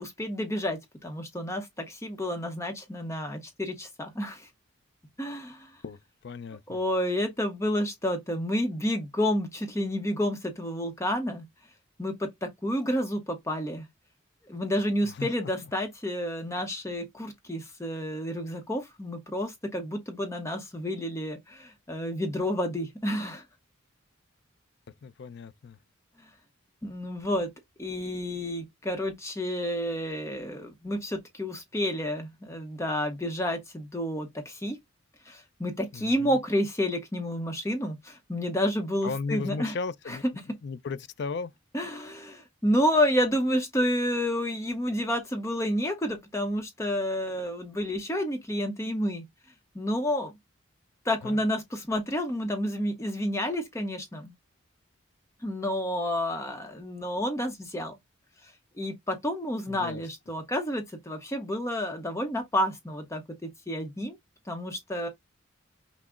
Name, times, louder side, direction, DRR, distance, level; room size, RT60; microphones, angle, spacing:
voice 1, 0.0-4.5 5.2-5.8 6.7-11.5 12.0-13.9 14.5-23.4 26.8-27.5 27.8-34.8 35.3-39.7 40.1-40.2 41.7-49.2 49.7-50.3 51.0-54.4 55.4-57.9 58.4-58.5 58.8-63.2 63.7-64.2 64.5-65.1, equal, 15° left, 0.7 m, -30 dB
voice 2, 5.8-6.8 15.0-15.3 25.0-25.8 35.9-36.4 39.0-40.2 40.6-41.5 51.2-51.4 59.7-60.0, left 4 dB, 55° left, 0.4 m, -36 dB
5.9 x 2.0 x 3.6 m
head